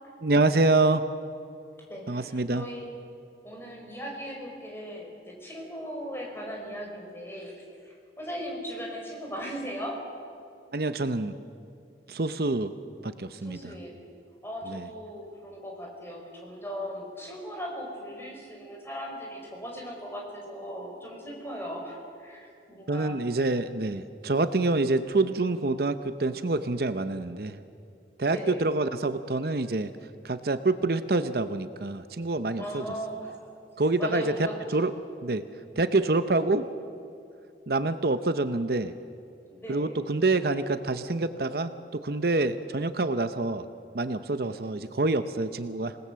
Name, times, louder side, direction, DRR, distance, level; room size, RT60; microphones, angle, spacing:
voice 1, 0.2-1.1 2.1-2.7 10.7-11.3 12.1-12.7 13.0-13.8 14.7-14.9 22.9-27.6 28.2-29.9 30.2-32.8 33.8-34.2 34.7-34.9 35.2-35.5 35.8-36.7 37.7-38.9 39.7-43.7 43.9-46.0, right 2 dB, 55° right, 11 dB, 0.8 m, -26 dB
voice 2, 1.9-2.9 3.4-10.0 13.4-13.9 14.4-23.2 28.2-28.6 32.6-33.5 34.0-34.6 36.0-36.1 39.5-40.0 44.4-44.6, equal, 15° left, -1 dB, 5.2 m, -38 dB
27.0 x 19.5 x 7.6 m, 2.5 s
head